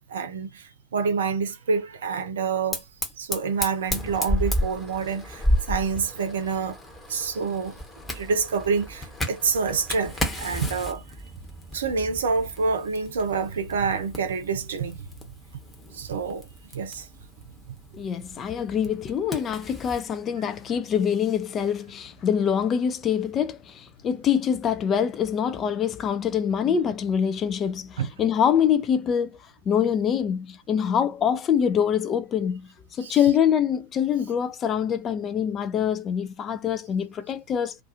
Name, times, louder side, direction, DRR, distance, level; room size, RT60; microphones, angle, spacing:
voice 1, 0.1-2.8 3.2-6.8 7.1-7.8 8.1-11.0 11.7-15.1 15.9-16.4 16.7-17.1 20.4-20.5 28.0-28.1 33.0-33.2, right 5 dB, 65° right, 0.6 m, -27 dB
Fire, 2.7-20.1, left 1 dB, 10° left, 0.9 m, -33 dB
voice 2, 17.9-29.4 29.7-32.7 33.0-37.8, left 8 dB, 30° left, 0.4 m, -25 dB
2.4 x 2.3 x 2.8 m
figure-of-eight pair, 85°, 0 cm